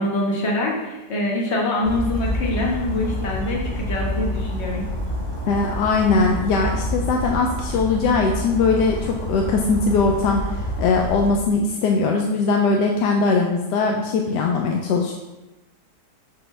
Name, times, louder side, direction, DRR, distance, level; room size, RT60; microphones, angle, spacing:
voice 1, 0.0-4.8, left 1 dB, 45° left, -2 dB, 1.4 m, -24 dB
Bird vocalization bird call bird song, 1.8-11.3, equal, 25° left, 0.6 m, -28 dB
voice 2, 5.5-15.1, left 4 dB, 80° left, 2 dB, 1.2 m, -20 dB
6.6 x 5.5 x 3.2 m, 1.0 s
omnidirectional pair, 1.8 m